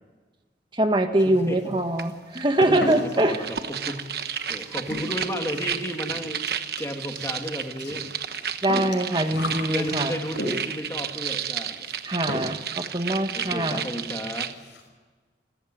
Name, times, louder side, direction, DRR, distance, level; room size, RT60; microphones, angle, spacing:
voice 1, 0.7-3.4 8.6-10.2 12.0-13.8, right 1 dB, 25° right, 6 dB, 1.4 m, -23 dB
sound 1, 1.2-1.7 2.0-10.9 11.8-12.0 12.3-12.8 13.0-13.1 13.5-13.6 13.9-14.1 14.4-14.9, left 1 dB, 90° left, 5.7 m, -35 dB
voice 2, 1.2-1.6 3.0-6.5 6.8-8.1 9.7-11.9 13.3-14.5, equal, 15° left, 3 dB, 2.3 m, -33 dB
sound 2, 2.0-2.1 2.4-14.5, right 8 dB, 55° right, 1.2 m, -32 dB
27.0 x 14.5 x 9.1 m, 1.4 s
head